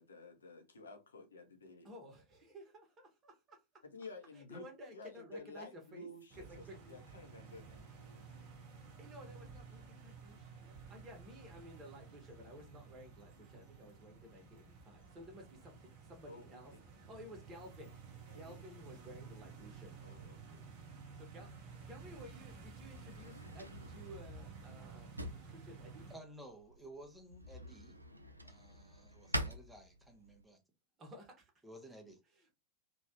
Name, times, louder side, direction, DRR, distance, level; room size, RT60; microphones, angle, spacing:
voice 1, 0.0-1.9 3.9-4.6 4.9-7.8 16.3-16.8 18.3-18.6 20.0-20.7, left 2 dB, 70° left, 0.7 m, -52 dB
voice 2, 1.8-3.6 4.3-6.1 6.3-7.0 9.0-18.0 18.3-20.4 21.1-26.1 31.0-31.5 32.3-32.5, equal, 25° right, 1.1 m, -55 dB
sound 1, 6.3-26.2, right 5 dB, 45° right, 0.9 m, -54 dB
Drawer open or close, 22.5-30.4, equal, 85° right, 0.4 m, -46 dB
voice 3, 26.1-28.0 28.4-30.6 31.6-32.2, right 1 dB, 5° right, 0.7 m, -54 dB
3.1 x 2.3 x 2.8 m
figure-of-eight pair, 90°, 0 cm